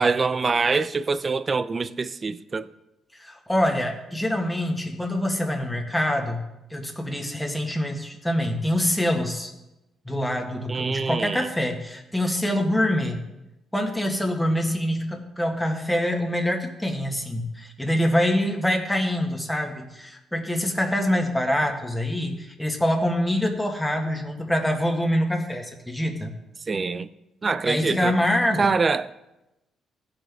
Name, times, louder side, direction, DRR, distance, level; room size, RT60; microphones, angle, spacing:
voice 1, 0.0-2.7 10.7-11.5 26.7-27.1 27.4-28.2 28.6-29.1, right 4 dB, 35° right, 0.4 m, -24 dB
voice 2, 3.1-6.4 6.7-9.5 10.1-13.2 13.7-26.3 27.7-28.7, left 1 dB, 5° left, 1.6 m, -25 dB
15.5 x 5.9 x 3.6 m
cardioid pair, 90°, 0 cm